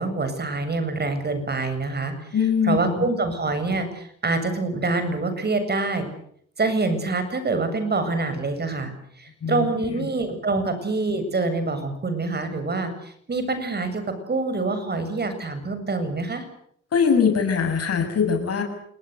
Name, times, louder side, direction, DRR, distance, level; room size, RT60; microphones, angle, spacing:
voice 1, 0.0-2.3 2.6-6.1 6.6-16.4, right 3 dB, 35° right, 9 dB, 7.6 m, -26 dB
voice 2, 2.3-2.9 9.4-10.1 16.9-18.6, left 6 dB, 55° left, 5 dB, 7.3 m, -22 dB
27.5 x 20.5 x 8.2 m, 0.68 s
cardioid pair, 90°, 30 cm